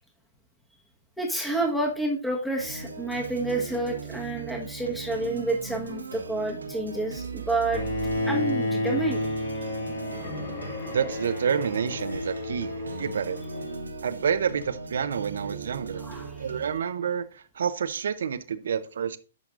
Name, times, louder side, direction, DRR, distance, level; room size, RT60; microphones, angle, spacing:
voice 1, 1.2-7.8 8.2-9.5 15.9-16.4, right 2 dB, ahead, 1.4 m, -29 dB
sound 1, 2.6-16.7, right 4 dB, 90° right, 1.2 m, -38 dB
Bowed string instrument, 7.7-13.8, left 1 dB, 65° left, 2.6 m, -31 dB
voice 2, 10.9-12.7 13.0-13.4 14.0-16.0 16.4-19.2, right 7 dB, 70° right, 0.7 m, -28 dB
10.0 x 5.9 x 2.5 m
hypercardioid pair, 120°, 0 cm